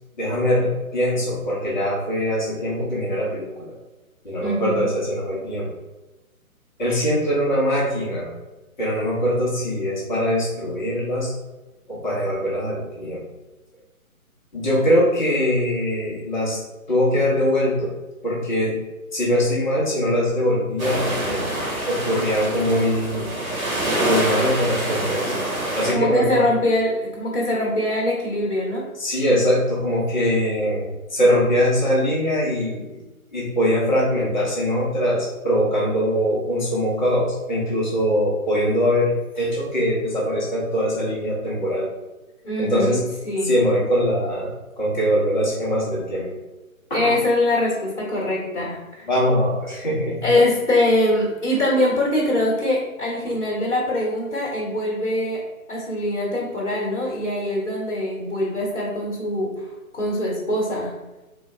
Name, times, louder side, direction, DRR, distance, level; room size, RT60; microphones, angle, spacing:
voice 1, 0.1-3.7 4.2-5.7 6.8-8.3 8.8-11.3 11.9-13.2 14.5-16.6 16.9-17.9 18.2-18.9 19.1-23.3 24.0-25.5 25.7-26.5 29.0-33.0 33.3-41.9 42.6-43.0 43.4-44.5 44.8-46.4 46.9-47.2 49.1-50.2, equal, 30° left, -5 dB, 1.0 m, -22 dB
voice 2, 4.4-4.9 25.9-28.8 42.4-43.0 43.2-43.5 46.9-49.1 50.2-55.4 55.7-59.6 59.9-60.9, left 1 dB, 55° left, -4 dB, 1.2 m, -23 dB
sound 1, 20.8-25.9, right 1 dB, 75° right, 1.4 m, -25 dB
3.9 x 2.4 x 3.3 m, 1.1 s
figure-of-eight pair, 145°, 43 cm